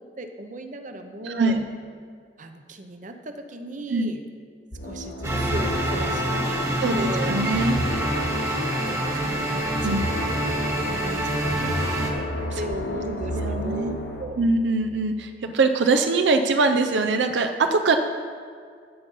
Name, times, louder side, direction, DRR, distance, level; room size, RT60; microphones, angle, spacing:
voice 1, 0.0-1.7 2.4-4.3 4.8-7.4 8.5-10.5 10.9-12.3 12.5-14.4, right 1 dB, 45° right, 6 dB, 0.8 m, -37 dB
voice 2, 1.2-1.6 3.9-4.1 6.8-7.8 9.8-10.0 12.5-12.6 13.3-14.0 14.4-18.0, right 3 dB, 80° right, 6 dB, 0.6 m, -22 dB
sound 1, 4.7-14.2, left 1 dB, 75° left, 1.4 m, -32 dB
sound 2, 5.2-12.1, right 1 dB, 20° right, 1.2 m, -26 dB
15.5 x 5.3 x 5.5 m, 2.2 s
head